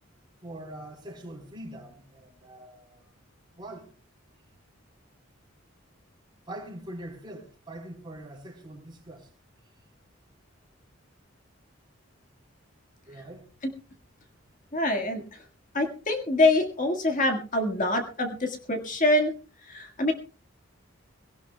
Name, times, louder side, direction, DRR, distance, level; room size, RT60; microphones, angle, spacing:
voice 1, 0.4-3.0 3.6-3.9 6.5-9.3 13.0-13.5, right 1 dB, 20° right, 3.8 m, -43 dB
voice 2, 14.7-15.2 15.7-19.3 19.7-20.1, left 2 dB, 40° left, 1.7 m, -25 dB
22.0 x 17.0 x 2.3 m
head